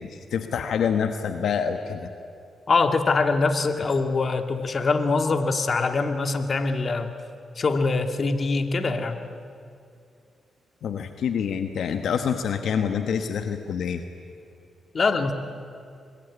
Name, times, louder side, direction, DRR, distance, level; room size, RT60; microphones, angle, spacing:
voice 1, 0.0-2.1 10.8-14.0, left 7 dB, 75° left, 7 dB, 1.3 m, -26 dB
voice 2, 2.7-7.1 7.6-9.2 14.9-15.3, left 3 dB, 50° left, 7 dB, 2.1 m, -23 dB
25.0 x 21.5 x 9.8 m, 2.4 s
cardioid pair, 70°, 0 cm